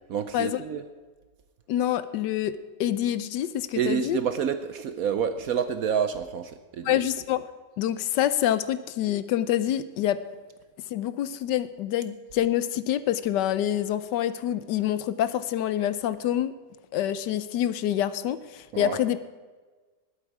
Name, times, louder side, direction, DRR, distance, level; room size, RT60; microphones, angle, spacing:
voice 1, 0.1-0.8 3.7-7.0 18.7-19.0, right 7 dB, 65° right, 10 dB, 0.9 m, -28 dB
voice 2, 1.7-2.5 2.8-4.2 6.8-7.5 7.8-10.2 10.9-16.5 16.9-19.3, left 11 dB, 75° left, 14 dB, 1.2 m, -26 dB
19.5 x 8.3 x 4.7 m, 1.4 s
omnidirectional pair, 2.0 m